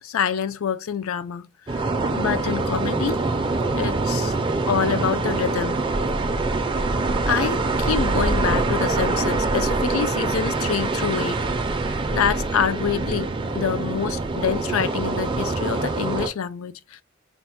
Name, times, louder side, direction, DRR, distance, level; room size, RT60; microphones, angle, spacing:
voice 1, 0.0-1.8 2.1-3.2 3.7-4.3 4.7-5.8 7.3-11.4 12.1-13.3 13.5-16.7, left 7 dB, 75° left, 0.4 m, -26 dB
sound 1, 1.7-16.3, right 3 dB, 25° right, 0.4 m, -24 dB
4.1 x 2.1 x 4.3 m
head